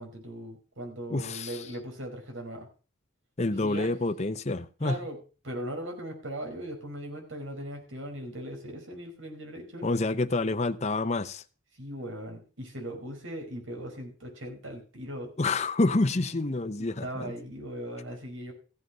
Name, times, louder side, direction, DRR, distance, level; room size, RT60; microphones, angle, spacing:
voice 1, 0.0-2.7 3.5-3.9 4.8-5.2 5.4-9.9 11.8-15.4 16.8-18.5, right 1 dB, 85° right, 5.1 m, -39 dB
voice 2, 1.1-1.6 3.4-5.0 9.8-11.4 15.4-17.3, left 2 dB, 35° left, 0.7 m, -28 dB
15.0 x 7.8 x 6.2 m
head